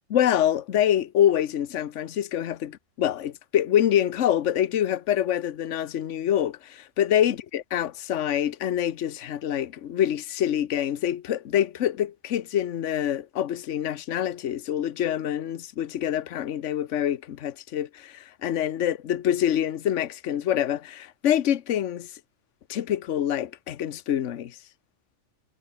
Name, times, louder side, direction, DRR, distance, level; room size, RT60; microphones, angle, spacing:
voice 1, 0.1-22.1 22.7-24.6, left 10 dB, 70° left, 1.2 m, -26 dB
omnidirectional pair, 1.3 m